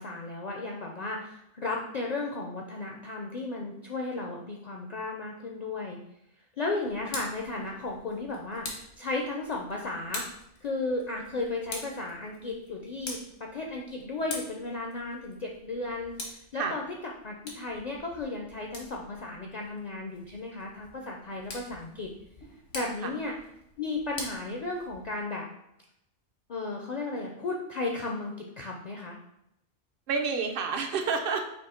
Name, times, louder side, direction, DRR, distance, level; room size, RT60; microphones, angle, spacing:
voice 1, 0.0-6.0 6.6-10.2 10.6-16.8 17.2-22.1 22.7-23.3 23.8-25.5 26.5-29.2, left 3 dB, 55° left, 0 dB, 0.4 m, -34 dB
Tick, 6.8-25.2, left 2 dB, 85° left, 1.3 m, -45 dB
voice 2, 22.8-23.1 30.1-31.5, right 5 dB, 60° right, 4 dB, 0.7 m, -30 dB
4.4 x 2.7 x 4.2 m, 0.81 s
omnidirectional pair, 1.2 m